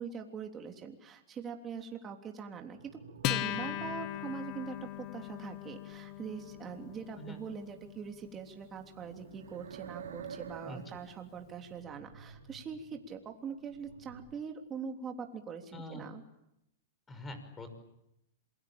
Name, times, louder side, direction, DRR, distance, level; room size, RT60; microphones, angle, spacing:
voice 1, 0.0-2.9 3.3-16.2, right 6 dB, 20° right, 3 dB, 3.3 m, -43 dB
sound 1, 2.5-5.1 6.0-7.9 8.7-13.2 13.5-14.2, right 7 dB, 85° right, 4.5 m, -51 dB
Acoustic guitar, 3.2-10.1, left 14 dB, 40° left, 1.5 m, -40 dB
voice 2, 15.7-16.0 17.1-17.7, left 1 dB, 15° left, 9 dB, 5.8 m, -44 dB
27.5 x 23.0 x 8.9 m, 0.84 s
hypercardioid pair, 130°, 0 cm